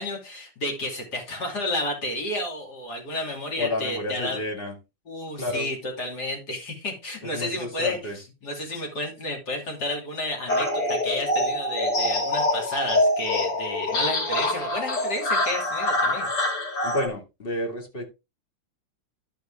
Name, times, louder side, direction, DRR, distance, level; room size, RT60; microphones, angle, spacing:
voice 1, 0.0-4.4 5.1-8.0 8.4-16.3, left 1 dB, 45° left, 3.3 m, -31 dB
voice 2, 3.6-4.8 5.3-5.7 7.2-8.2 16.8-18.1, left 1 dB, 25° left, 2.2 m, -30 dB
sound 1, 10.5-17.1, left 1 dB, 80° left, 3.2 m, -25 dB
11.5 x 5.5 x 3.5 m
omnidirectional pair, 2.4 m